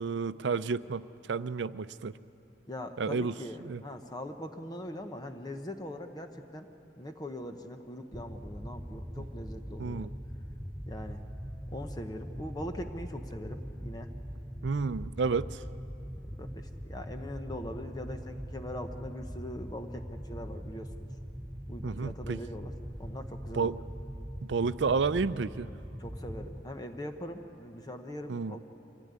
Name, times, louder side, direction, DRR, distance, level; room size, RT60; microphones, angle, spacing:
voice 1, 0.0-2.1 3.0-3.3 3.6-3.8 9.2-9.3 9.8-10.1 14.6-15.6 21.8-22.4 23.5-23.8 24.4-25.7 28.3-28.5, right 4 dB, 80° right, 15 dB, 0.5 m, -31 dB
voice 2, 2.7-6.7 7.0-10.1 10.9-11.2 11.7-14.1 16.4-21.1 21.7-22.7 23.0-23.7 26.0-28.6, left 1 dB, 20° left, 6 dB, 0.9 m, -41 dB
sound 1, 8.1-26.6, equal, 5° right, 0.6 m, -41 dB
24.0 x 16.0 x 9.6 m, 2.8 s
head